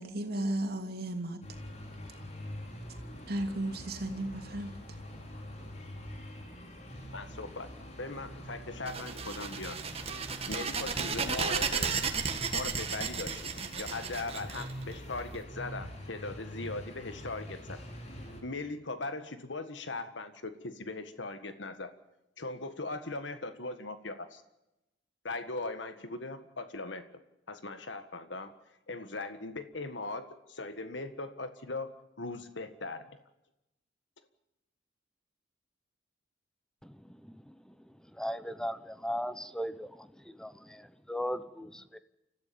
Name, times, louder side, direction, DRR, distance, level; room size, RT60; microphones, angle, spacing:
voice 1, 0.0-1.4 3.3-4.7, right 1 dB, 55° right, 4 dB, 2.9 m, -34 dB
sound 1, 1.4-18.4, equal, 35° left, 3.9 m, -45 dB
voice 2, 7.1-7.7 8.0-9.8 10.1-10.2 10.5-11.9 12.5-17.8 18.4-21.9 22.4-24.4 25.2-27.0 27.5-28.5 28.9-31.9 32.2-33.2, left 3 dB, 80° left, 9 dB, 1.7 m, -39 dB
sound 2, 8.9-15.4, right 5 dB, 35° right, 1.8 m, -34 dB
voice 3, 38.2-39.9 40.4-40.5 41.1-42.0, equal, 5° left, 13 dB, 0.9 m, -36 dB
29.5 x 15.0 x 7.1 m, 0.90 s
head